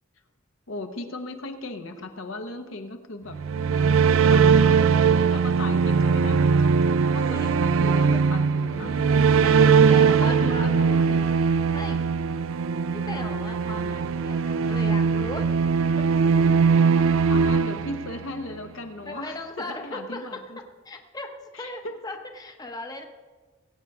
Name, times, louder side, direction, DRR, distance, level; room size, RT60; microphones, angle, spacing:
voice 1, 0.7-3.4 3.7-3.9 4.3-4.8 5.1-8.9 9.8-9.9 10.2-11.3 17.3-20.6 21.5-22.0, left 2 dB, 70° left, 6 dB, 1.0 m, -37 dB
sound 1, 3.3-18.5, right 5 dB, 75° right, 0.4 m, -20 dB
sound 2, 8.6-15.4 15.7-15.8 16.1-16.3, left 1 dB, 45° left, 1.7 m, -48 dB
voice 2, 9.4-10.7 11.0-11.1 11.7-12.1 12.6-15.5 19.1-20.4 20.8-23.0, left 2 dB, 20° left, 4 dB, 0.8 m, -37 dB
19.5 x 8.5 x 3.6 m, 1.4 s
head